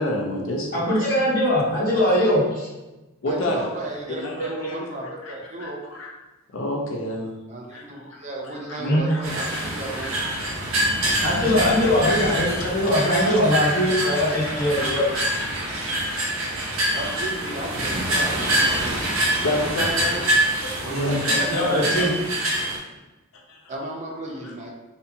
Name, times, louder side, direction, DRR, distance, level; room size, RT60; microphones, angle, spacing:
voice 1, 0.0-0.9 3.2-3.7 4.1-4.8 5.2-5.3 5.6-6.1 6.5-7.3 7.7-8.2 8.7-9.6 10.0-10.3 11.4-11.9 12.1-12.3 12.6-12.7 13.0-14.5 14.8-15.2 19.4-20.3 20.7-22.1 23.5-23.7, left 1 dB, 70° left, -1 dB, 0.6 m, -30 dB
voice 2, 0.7-2.7 8.8-9.0 11.2-15.0 20.9-22.1, left 1 dB, 45° left, -12 dB, 1.2 m, -21 dB
voice 3, 3.3-5.8 7.5-10.2 16.9-19.0 20.8-21.4 21.9-22.1 23.7-24.7, right 2 dB, 35° right, 0 dB, 0.4 m, -34 dB
sound 1, 9.2-22.8, right 1 dB, 85° right, 0.6 m, -25 dB
2.7 x 2.6 x 2.3 m, 1.1 s
head